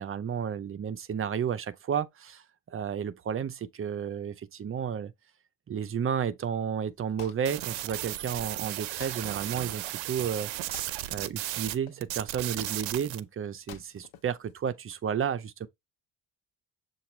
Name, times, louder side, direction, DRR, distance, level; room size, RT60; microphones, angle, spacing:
voice 1, 0.0-5.1 5.7-10.5 11.1-15.7, right 8 dB, 30° right, 0.5 m, -32 dB
Wood, 6.8-15.1, left 8 dB, 90° left, 0.9 m, -53 dB
sound 1, 7.4-11.8 12.0-13.2, right 15 dB, 70° right, 0.6 m, -35 dB
6.9 x 2.5 x 3.1 m
cardioid pair, 120°, 48 cm